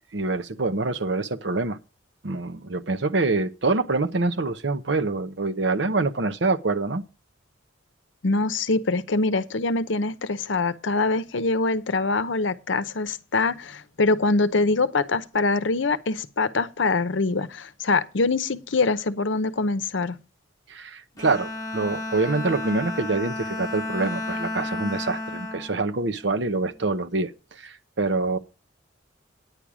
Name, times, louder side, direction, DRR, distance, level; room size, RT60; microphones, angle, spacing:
voice 1, 0.1-1.8 2.2-7.0 20.7-28.4, right 3 dB, 60° right, 0.8 m, -25 dB
voice 2, 8.2-20.2, left 3 dB, 70° left, 0.8 m, -24 dB
Bowed string instrument, 21.2-26.7, left 2 dB, 15° left, 1.2 m, -33 dB
9.9 x 8.7 x 4.9 m
head